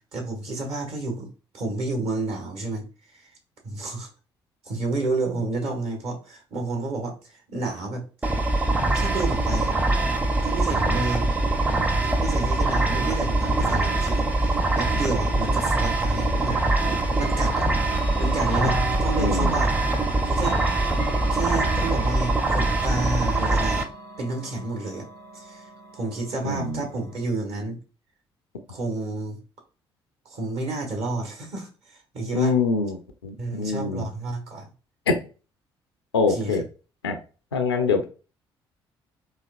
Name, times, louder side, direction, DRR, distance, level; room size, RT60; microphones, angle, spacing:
voice 1, 0.1-1.3 1.5-3.3 3.6-4.1 4.6-8.0 8.9-9.7 10.4-11.3 12.2-19.7 20.2-20.6 21.3-23.8 24.2-25.1 25.3-27.8 28.7-29.4 30.3-32.5 33.4-34.7 36.3-36.5, right 2 dB, 55° right, 2 dB, 1.3 m, -30 dB
sound 1, 8.2-23.8, right 2 dB, 10° right, 0.6 m, -23 dB
Chime / Clock, 16.4-27.3, right 1 dB, 90° right, 0.5 m, -38 dB
voice 2, 19.2-19.6 26.4-26.9 32.3-34.1 35.1-35.2 36.1-36.6 37.0-37.2 37.5-38.1, left 4 dB, 85° left, 7 dB, 0.4 m, -24 dB
4.1 x 2.7 x 2.4 m, 0.35 s
figure-of-eight pair, 45°, 13 cm